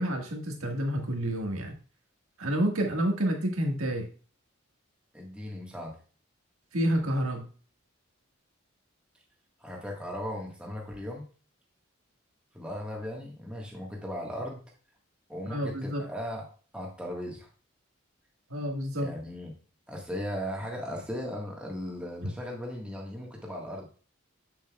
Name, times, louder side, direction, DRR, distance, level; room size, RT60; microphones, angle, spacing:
voice 1, 0.0-1.7 2.4-4.1 6.7-7.5 15.4-16.0 18.5-19.1, equal, 90° right, 2 dB, 1.7 m, -29 dB
voice 2, 5.1-5.9 9.6-11.3 12.5-14.6 15.3-16.4 16.7-17.5 19.0-19.5 19.9-23.9, equal, 5° right, -1 dB, 1.5 m, -37 dB
8.0 x 7.0 x 2.3 m, 0.39 s
head